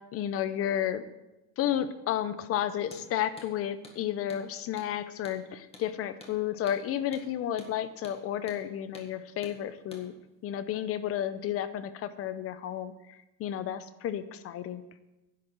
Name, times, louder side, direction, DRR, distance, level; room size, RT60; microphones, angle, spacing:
voice 1, 0.1-1.0 1.6-10.1 10.4-14.8, left 10 dB, 35° left, 13 dB, 0.7 m, -32 dB
Hammer, 2.8-3.1 3.4-3.5 3.8-4.0 4.3-4.4 4.8-4.9 5.2-5.4 5.7-5.9 6.2-6.4 6.7-6.8 7.1-7.3 7.6-7.7 8.0-8.2 8.5-8.6 8.9-9.1 9.4-9.6 9.9-10.1, left 2 dB, 15° left, 1.7 m, -49 dB
11.0 x 7.8 x 7.3 m, 0.99 s
cardioid pair, 160°, 40 cm